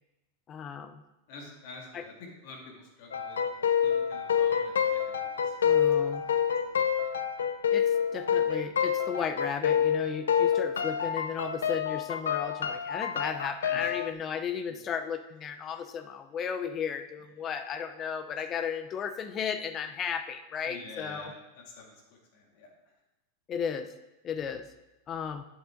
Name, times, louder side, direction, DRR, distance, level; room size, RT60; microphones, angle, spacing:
voice 1, 0.5-1.0 1.9-2.0 5.6-6.2 7.7-21.3 23.5-23.9 24.2-24.7 25.1-25.4, left 7 dB, 30° left, 10 dB, 0.6 m, -35 dB
voice 2, 1.3-6.9 13.7-13.9 14.7-14.9 17.4-17.5 20.6-22.0 22.3-22.7, left 3 dB, 60° left, 1 dB, 2.2 m, -48 dB
sound 1, 3.1-14.1, left 8 dB, 90° left, 0.6 m, -28 dB
7.9 x 7.8 x 3.8 m, 0.97 s
hypercardioid pair, 110°, 0 cm